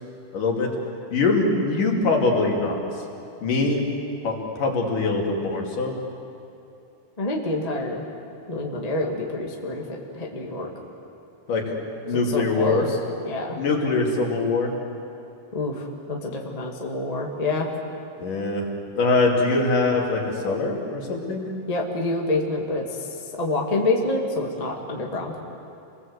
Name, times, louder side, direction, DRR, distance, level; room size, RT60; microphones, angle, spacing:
voice 1, 0.3-0.7 1.1-2.8 3.4-3.8 4.2-5.9 11.5-11.7 12.1-12.9 13.6-14.7 18.2-18.6 19.0-21.4, left 3 dB, 55° left, 0 dB, 4.1 m, -23 dB
voice 2, 7.2-8.0 8.5-10.7 12.1-13.0 13.2-13.6 15.5-17.7 21.7-23.1 23.4-25.4, left 2 dB, 15° left, 0 dB, 1.2 m, -27 dB
28.5 x 21.0 x 8.1 m, 2.8 s
omnidirectional pair, 4.6 m